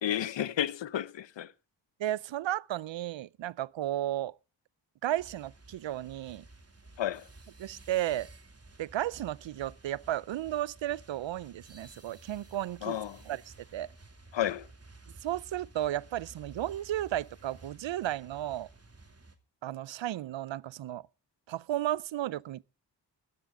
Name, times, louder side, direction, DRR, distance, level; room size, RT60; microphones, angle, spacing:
voice 1, 0.0-1.5 7.0-7.2 12.8-13.2 14.3-14.7, left 11 dB, 80° left, 0.8 m, -31 dB
voice 2, 2.0-4.3 5.0-6.4 7.6-8.3 8.8-13.0 13.3-13.4 13.7-13.9 15.2-18.7 19.6-21.1 21.5-22.6, right 13 dB, 85° right, 0.6 m, -34 dB
sound 1, 5.2-19.4, right 3 dB, 35° right, 2.7 m, -54 dB
17.0 x 12.5 x 3.7 m
cardioid pair, 50°, 44 cm